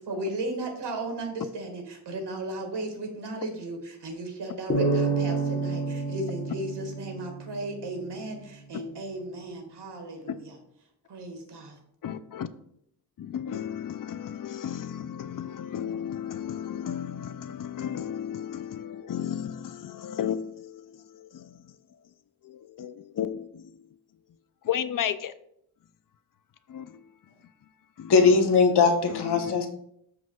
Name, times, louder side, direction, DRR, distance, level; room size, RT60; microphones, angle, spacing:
voice 1, 0.1-10.5 11.1-11.7, right 2 dB, 90° right, 4 dB, 1.8 m, -35 dB
sound 1, 4.7-8.1, right 3 dB, 30° left, 1.2 m, -29 dB
voice 2, 12.0-12.5 13.2-21.6 22.4-23.8 24.6-25.3 26.7-27.0 28.0-28.1 29.1-29.5, left 9 dB, 55° left, 13 dB, 0.5 m, -34 dB
voice 3, 28.1-29.7, left 5 dB, 75° left, 4 dB, 1.1 m, -20 dB
13.0 x 4.8 x 2.3 m, 0.71 s
wide cardioid pair, 145°, 40 cm